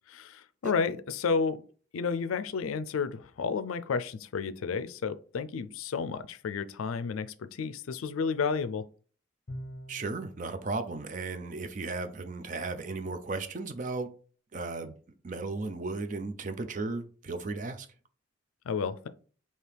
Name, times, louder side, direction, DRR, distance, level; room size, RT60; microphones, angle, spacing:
voice 1, 0.1-1.6 1.9-8.8 18.7-19.1, left 5 dB, 85° left, 0.4 m, -31 dB
Bowed string instrument, 9.5-10.4, equal, 50° left, 0.8 m, -42 dB
voice 2, 9.9-14.1 14.5-15.0 15.2-17.9, right 3 dB, 40° right, 0.4 m, -35 dB
4.6 x 2.8 x 3.3 m
head